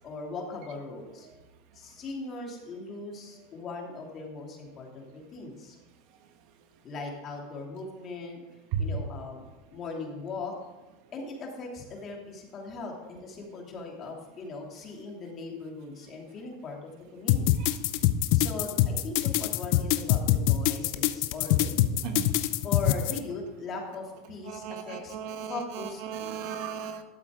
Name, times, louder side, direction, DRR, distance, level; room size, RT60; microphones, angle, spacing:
voice 1, 0.0-1.3 1.7-5.8 6.8-8.4 8.8-10.6 11.1-17.7 18.3-22.2 22.6-25.2 25.5-26.0, left 3 dB, 35° left, 0 dB, 2.8 m, -39 dB
sound 1, 17.3-23.2, left 15 dB, 60° left, 0.6 m, -24 dB
voice 2, 24.5-25.8 26.1-27.0, right 8 dB, 60° right, 7 dB, 1.2 m, -35 dB
12.5 x 7.4 x 3.8 m, 1.2 s
supercardioid pair, 120°, 0 cm